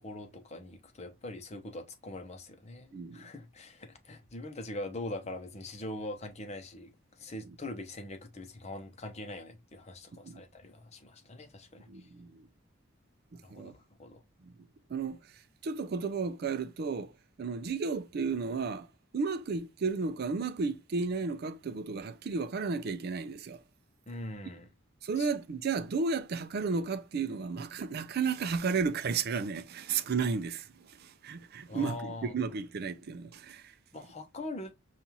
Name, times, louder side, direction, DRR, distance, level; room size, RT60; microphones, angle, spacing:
voice 1, 0.0-11.9 13.4-13.7 14.0-14.2 24.1-24.7 25.2-25.3 31.7-32.4 33.9-34.7, left 1 dB, 35° left, 0.8 m, -42 dB
voice 2, 2.9-3.3 10.2-10.4 11.9-12.5 13.3-13.7 14.4-14.5 14.9-15.2 15.6-17.1 17.4-18.9 19.1-23.6 25.0-33.7, right 5 dB, 50° right, 0.4 m, -33 dB
5.3 x 2.4 x 2.8 m
head